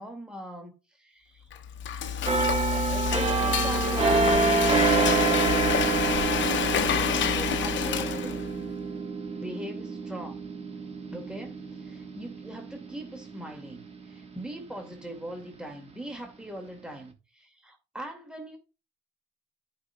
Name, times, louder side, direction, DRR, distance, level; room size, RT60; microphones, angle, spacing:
voice 1, 0.0-1.5 2.7-6.0 6.7-8.7 9.4-10.5 11.1-18.6, equal, 5° right, 2.1 m, -41 dB
Frying (food), 1.5-8.6, left 8 dB, 70° left, 0.9 m, -28 dB
sound 1, 2.3-13.8 14.2-14.5, right 4 dB, 30° right, 1.2 m, -27 dB
11.5 x 5.3 x 2.2 m
cardioid pair, 90°, 20 cm